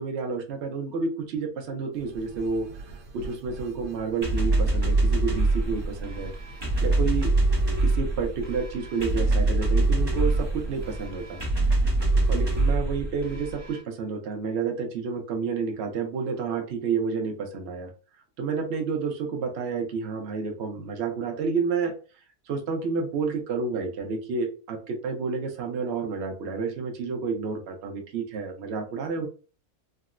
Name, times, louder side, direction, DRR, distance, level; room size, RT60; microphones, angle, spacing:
voice 1, 0.0-2.7 3.1-6.3 6.8-7.3 7.8-11.4 12.3-17.9 18.4-21.9 22.5-29.3, right 5 dB, 60° right, 3 dB, 0.7 m, -30 dB
sound 1, 1.9-12.7, right 3 dB, 80° right, 1.2 m, -45 dB
sound 2, 4.2-13.8, right 2 dB, 25° right, 0.6 m, -24 dB
3.6 x 2.0 x 2.4 m, 0.37 s
omnidirectional pair, 1.7 m